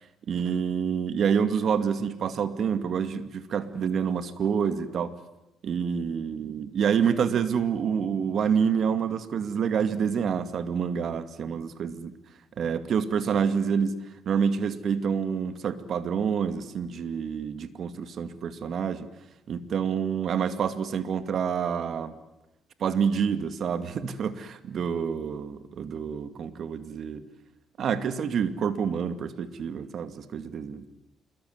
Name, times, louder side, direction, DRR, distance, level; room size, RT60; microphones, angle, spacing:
voice 1, 0.3-5.1 5.6-12.1 12.6-14.0 14.3-19.1 19.5-22.1 22.8-27.2 27.8-30.9, right 7 dB, 60° right, 10 dB, 2.3 m, -27 dB
27.5 x 22.5 x 9.5 m, 0.89 s
cardioid pair, 90°, 0 cm